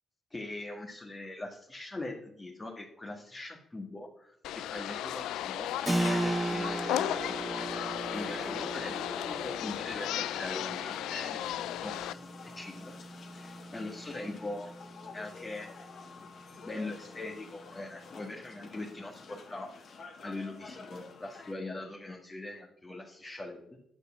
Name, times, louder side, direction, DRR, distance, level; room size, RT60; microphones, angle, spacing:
voice 1, 0.3-11.4 11.7-12.2 12.5-12.9 13.3-14.7 15.1-15.7 16.6-19.7 20.2-23.7, left 2 dB, 20° left, -1 dB, 1.8 m, -41 dB
sound 1, 4.4-12.1, left 12 dB, 90° left, 0.4 m, -35 dB
Keyboard (musical), 5.9-16.2, right 2 dB, 15° right, 0.7 m, -37 dB
sound 2, 6.5-21.5, left 4 dB, 55° left, 2.2 m, -50 dB
9.8 x 6.8 x 7.5 m, 0.75 s
cardioid pair, 90°, 0 cm